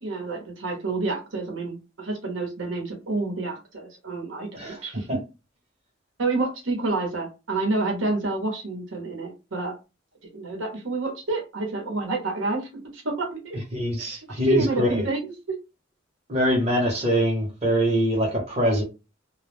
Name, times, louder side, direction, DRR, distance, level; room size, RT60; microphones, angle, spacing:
voice 1, 0.0-5.1 6.2-9.7 10.3-13.6 14.0-14.2 14.4-15.3, right 3 dB, 75° right, 0.9 m, -29 dB
voice 2, 13.7-15.1 16.3-18.8, equal, 30° right, 0.9 m, -23 dB
2.2 x 2.1 x 3.2 m
head